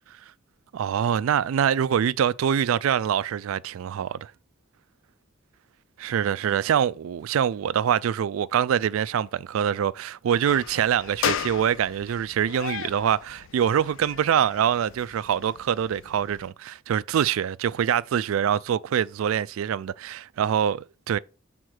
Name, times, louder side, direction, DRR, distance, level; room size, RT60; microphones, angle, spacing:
voice 1, 0.7-4.3 6.0-21.2, right 8 dB, 80° right, 0.3 m, -24 dB
sound 1, 10.5-16.5, left 8 dB, 65° left, 0.4 m, -35 dB
6.4 x 3.7 x 6.2 m
head